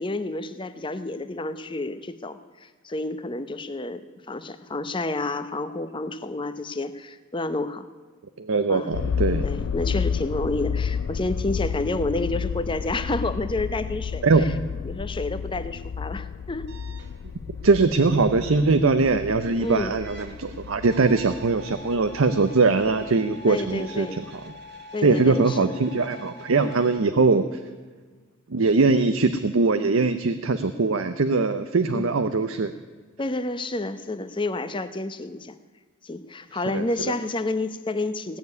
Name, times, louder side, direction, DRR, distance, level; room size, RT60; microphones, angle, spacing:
voice 1, 0.0-7.9 8.7-8.9 9.4-14.6 14.8-16.7 19.5-19.9 23.5-24.2 24.9-25.8 31.9-32.2 33.2-35.6 36.0-38.4, left 2 dB, 25° left, 11 dB, 0.8 m, -30 dB
voice 2, 8.4-9.4 14.2-14.5 17.6-24.2 25.0-27.5 28.5-32.7 36.7-36.8, right 3 dB, 85° right, 9 dB, 0.7 m, -21 dB
sound 1, 8.9-23.1 23.7-23.8, left 6 dB, 75° left, 0.4 m, -31 dB
sound 2, 16.7-27.0, left 1 dB, 55° right, 1.7 m, -46 dB
17.5 x 7.0 x 9.5 m, 1.4 s
head